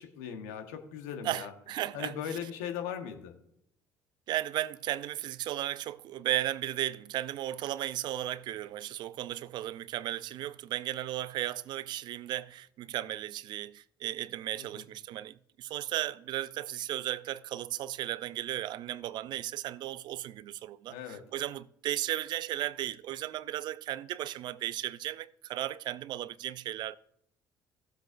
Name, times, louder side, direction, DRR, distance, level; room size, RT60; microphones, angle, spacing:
voice 1, 0.0-1.5 1.9-3.3 14.6-14.8 20.9-21.2, left 8 dB, 85° left, 1.2 m, -39 dB
voice 2, 1.2-2.1 4.3-27.0, right 13 dB, 65° right, 0.4 m, -35 dB
15.5 x 7.8 x 2.5 m
hypercardioid pair, 60°, 8 cm